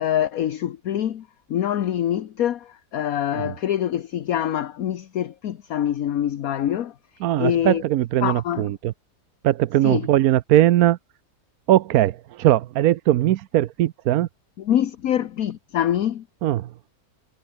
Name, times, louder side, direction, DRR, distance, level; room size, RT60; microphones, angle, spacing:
voice 1, 0.0-7.8 8.2-8.7 9.8-10.1 14.6-16.2, left 10 dB, 60° left, 1.3 m, -25 dB
voice 2, 7.2-8.9 9.4-11.0 11.7-14.3 16.4-16.7, right 13 dB, 70° right, 1.0 m, -20 dB
omnidirectional pair, 1.8 m